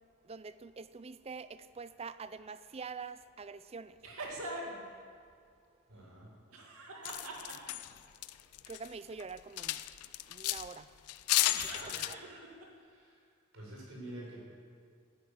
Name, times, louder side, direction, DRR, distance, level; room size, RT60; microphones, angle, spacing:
voice 1, 0.2-4.0 8.7-9.8 10.3-10.9 11.6-12.2, right 5 dB, 25° right, 14 dB, 0.4 m, -45 dB
sound 1, 4.0-4.9 6.5-7.9 11.5-12.6, right 1 dB, 80° right, 2.3 m, -43 dB
voice 2, 5.9-6.3 11.8-12.2 12.7-13.3 13.5-14.4, right 1 dB, 60° right, -3 dB, 5.4 m, -49 dB
sound 2, 7.0-8.9 9.2-10.7 11.1-12.1, left 15 dB, 85° left, 0.5 m, -33 dB
14.0 x 10.5 x 8.6 m, 2.1 s
head